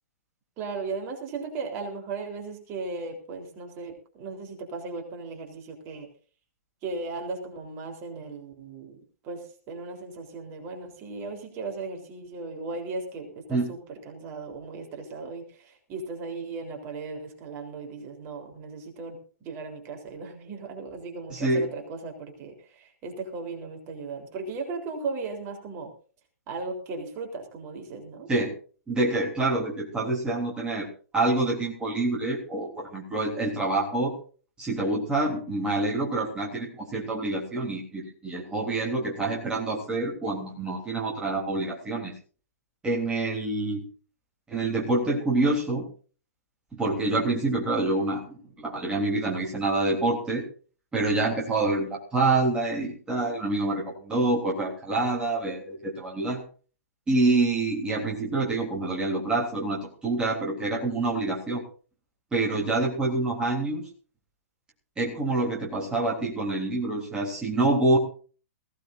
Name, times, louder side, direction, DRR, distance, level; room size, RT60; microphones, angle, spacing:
voice 1, 0.6-6.1 6.8-9.0 9.2-13.8 14.1-25.9 26.5-28.3, right 3 dB, 30° right, 3 dB, 3.7 m, -37 dB
voice 2, 21.3-21.6 28.3-28.5 28.9-30.9 31.1-34.1 34.6-42.1 42.8-43.8 44.5-45.9 46.7-50.4 50.9-56.4 57.1-61.6 62.3-63.9 65.0-68.0, right 2 dB, 10° right, -3 dB, 3.3 m, -26 dB
20.5 x 16.5 x 2.6 m, 0.39 s
figure-of-eight pair, 120°, 8 cm